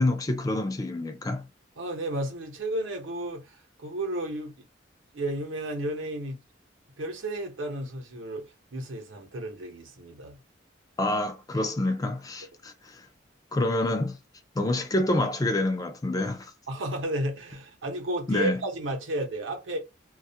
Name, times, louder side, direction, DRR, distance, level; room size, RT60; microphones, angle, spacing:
voice 1, 0.0-1.4 11.0-13.0 13.5-14.2 14.6-16.5 18.3-18.6, left 2 dB, 20° left, 0.3 m, -27 dB
voice 2, 1.8-4.5 5.1-6.4 7.0-8.5 8.7-10.4 16.7-19.8, right 1 dB, 85° right, 0.7 m, -32 dB
2.3 x 2.0 x 2.7 m
head